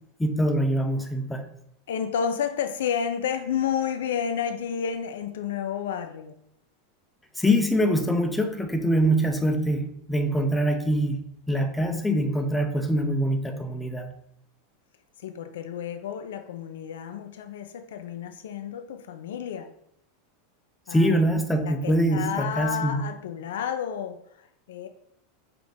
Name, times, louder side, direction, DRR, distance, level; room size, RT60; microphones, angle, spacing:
voice 1, 0.2-1.5 7.4-14.1 20.9-23.0, equal, 5° left, 6 dB, 0.5 m, -24 dB
voice 2, 1.9-6.3 15.2-19.7 20.9-21.2 21.6-24.9, left 8 dB, 60° left, 8 dB, 0.3 m, -31 dB
5.0 x 2.9 x 3.7 m, 0.74 s
figure-of-eight pair, 85°, 0 cm